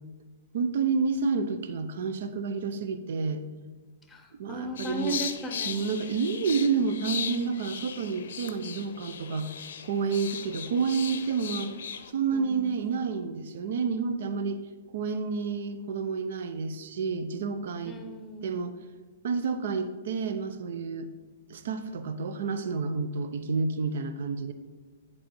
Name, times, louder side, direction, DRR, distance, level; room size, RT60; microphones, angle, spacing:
voice 1, 0.5-3.4 4.4-5.2 5.7-9.5 9.8-11.7 12.1-14.6 14.9-18.0 18.4-18.8 19.2-21.1 21.5-24.5, right 5 dB, 55° right, 10 dB, 0.6 m, -29 dB
voice 2, 4.1-6.0 12.3-12.7 17.8-18.6, right 2 dB, 10° left, 5 dB, 1.0 m, -36 dB
sound 1, 4.8-12.1, left 7 dB, 60° left, 0.6 m, -38 dB
10.0 x 4.8 x 4.2 m, 1.3 s
figure-of-eight pair, 110°, 0 cm